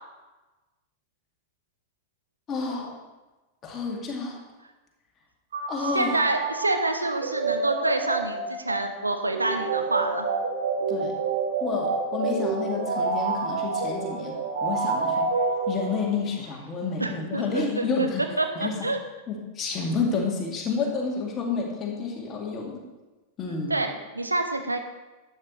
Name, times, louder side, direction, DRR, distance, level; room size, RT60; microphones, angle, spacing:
voice 1, 2.5-3.0 3.6-4.4 5.7-6.2 10.9-11.2 11.6-15.3 15.7-18.2 18.6-18.8 19.3-22.8 23.4-23.7, left 4 dB, 25° left, -1 dB, 2.1 m, -30 dB
sound 1, 5.5-16.3, right 4 dB, 65° right, 1.4 m, -28 dB
voice 2, 5.9-10.3 17.0-18.1 18.4-19.0 23.7-24.8, right 2 dB, 80° right, 6 dB, 0.9 m, -27 dB
12.0 x 8.6 x 3.1 m, 1.1 s
figure-of-eight pair, 90°, 0 cm